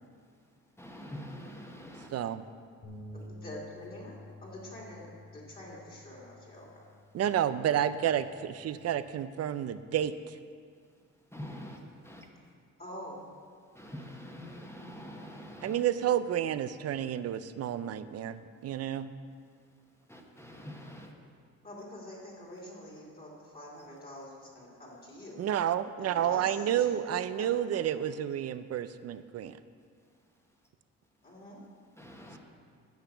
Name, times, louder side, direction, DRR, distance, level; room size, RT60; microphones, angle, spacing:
voice 1, 0.2-2.2 7.2-7.3 10.9-12.3 13.6-15.8 18.6-18.7 19.4-21.1 30.0-30.6 31.9-32.4, equal, 10° left, 1 dB, 1.3 m, -47 dB
sound 1, 2.8-9.1, left 1 dB, 85° left, 2.3 m, -51 dB
voice 2, 3.1-5.1 5.3-6.8 12.8-13.2 21.6-25.4 26.0-28.1 31.2-31.6, left 1 dB, 30° left, -3 dB, 2.8 m, -46 dB
voice 3, 7.1-10.4 15.6-19.1 25.4-29.6, right 10 dB, 55° right, 13 dB, 0.5 m, -30 dB
10.5 x 5.7 x 7.3 m, 2.1 s
cardioid pair, 90°, 30 cm